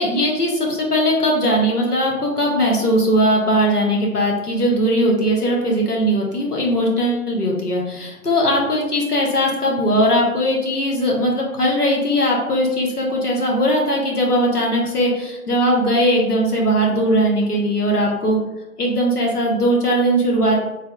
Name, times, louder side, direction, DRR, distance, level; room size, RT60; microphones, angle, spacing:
voice 1, 0.0-18.4 18.8-20.7, equal, 80° left, -2 dB, 1.2 m, -19 dB
3.3 x 3.2 x 2.3 m, 0.99 s
figure-of-eight pair, 145°, 45 cm